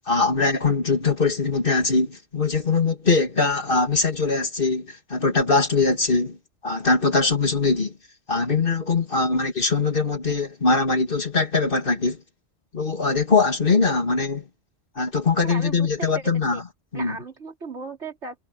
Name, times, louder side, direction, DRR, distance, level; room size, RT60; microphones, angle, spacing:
voice 1, 0.1-6.4 6.6-7.9 8.3-12.2 12.7-14.5 15.0-16.6 16.9-17.2, left 4 dB, 45° left, 2.3 m, -22 dB
voice 2, 15.4-16.6 16.9-18.4, right 4 dB, 70° right, 3.6 m, -36 dB
omnidirectional pair, 1.2 m